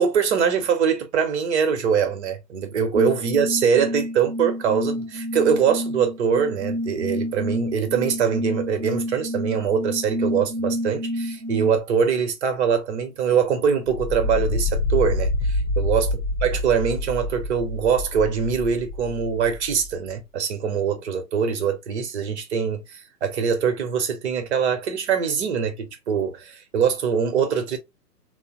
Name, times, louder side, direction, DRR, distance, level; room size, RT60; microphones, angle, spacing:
voice 1, 0.0-27.8, right 7 dB, 45° right, 0.9 m, -23 dB
sound 1, 2.9-11.8, equal, 5° left, 1.0 m, -29 dB
sound 2, 13.9-19.9, left 2 dB, 45° left, 0.8 m, -27 dB
3.1 x 2.0 x 2.8 m
hypercardioid pair, 130°, 49 cm